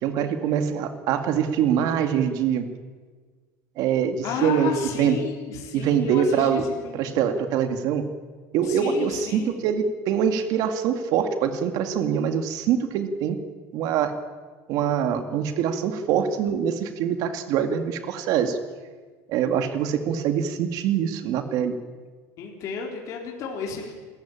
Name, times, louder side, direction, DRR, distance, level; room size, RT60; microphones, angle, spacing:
voice 1, 0.0-2.7 3.8-4.7 5.0-5.2 5.7-6.7 6.9-8.1 8.5-13.4 13.7-14.1 14.7-18.6 19.3-21.8, right 8 dB, 55° right, 8 dB, 2.2 m, -24 dB
voice 2, 4.2-7.1 8.6-9.6 22.4-23.9, left 6 dB, 45° left, 0 dB, 3.8 m, -32 dB
27.5 x 14.5 x 8.8 m, 1.5 s
cardioid pair, 165°, 8 cm